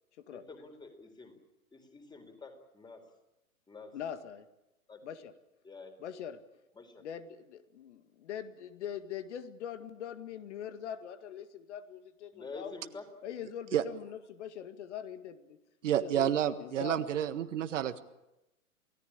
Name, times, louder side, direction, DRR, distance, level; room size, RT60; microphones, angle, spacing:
voice 1, 0.3-1.4 1.7-3.0 3.7-3.9 4.9-5.0 5.6-5.9 6.7-7.0 12.3-13.1, left 3 dB, 10° left, 7 dB, 4.1 m, -48 dB
voice 2, 3.9-4.5 5.0-5.3 6.0-6.4 7.0-12.7 13.2-15.6 16.0-17.0, left 9 dB, 50° left, 10 dB, 2.1 m, -42 dB
voice 3, 15.8-18.0, right 10 dB, 55° right, 11 dB, 1.7 m, -30 dB
29.0 x 18.0 x 8.8 m, 0.93 s
figure-of-eight pair, 120°, 43 cm